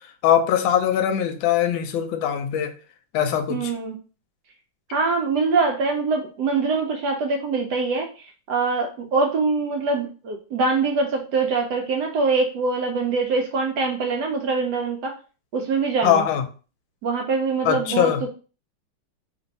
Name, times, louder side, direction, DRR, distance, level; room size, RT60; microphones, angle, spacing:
voice 1, 0.2-2.7 3.1-3.7 16.0-16.4 17.6-18.2, left 9 dB, 75° left, 1.3 m, -21 dB
voice 2, 3.5-4.0 4.9-15.1 15.5-16.3 17.0-18.3, right 4 dB, 80° right, 0.9 m, -24 dB
3.3 x 2.6 x 4.0 m
omnidirectional pair, 2.4 m